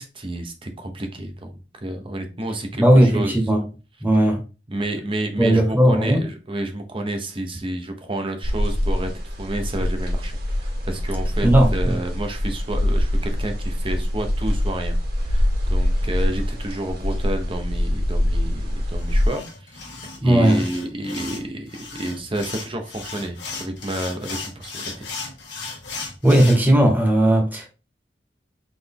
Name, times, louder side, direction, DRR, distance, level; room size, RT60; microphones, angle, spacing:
voice 1, 0.0-3.6 4.2-4.3 4.7-9.1 9.4-25.1, right 1 dB, 30° right, 0.8 m, -30 dB
voice 2, 2.7-3.6 4.0-4.4 5.4-6.2 11.4-12.0 20.2-20.6 26.2-27.7, right 1 dB, 10° right, 1.1 m, -16 dB
sound 1, 8.4-19.3, left 1 dB, 60° right, 2.0 m, -23 dB
sound 2, 19.0-26.6, left 4 dB, 90° left, 1.1 m, -36 dB
4.0 x 3.3 x 3.5 m
head